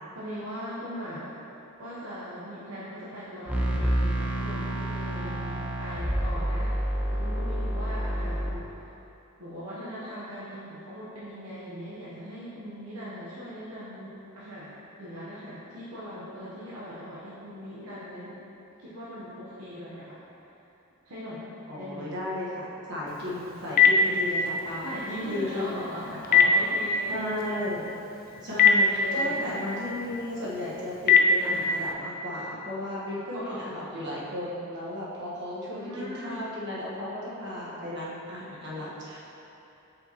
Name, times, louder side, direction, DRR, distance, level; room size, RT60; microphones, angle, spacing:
voice 1, 0.1-1.3 1.8-6.7 7.1-8.7 9.4-18.4 18.8-20.2 21.0-21.5 21.8-22.1 23.4-23.5 24.8-27.2 29.0-29.7 33.3-33.9 35.7-36.4, equal, 80° right, -9 dB, 1.0 m, -39 dB
sound 1, 3.5-8.5, right 1 dB, 5° right, 0.6 m, -28 dB
voice 2, 21.7-25.0 25.3-26.5 27.1-27.9 28.4-39.2, left 1 dB, 55° right, -7 dB, 1.4 m, -34 dB
Telephone, 23.1-31.9, left 4 dB, 40° left, 0.4 m, -25 dB
7.2 x 5.0 x 3.0 m, 2.9 s
head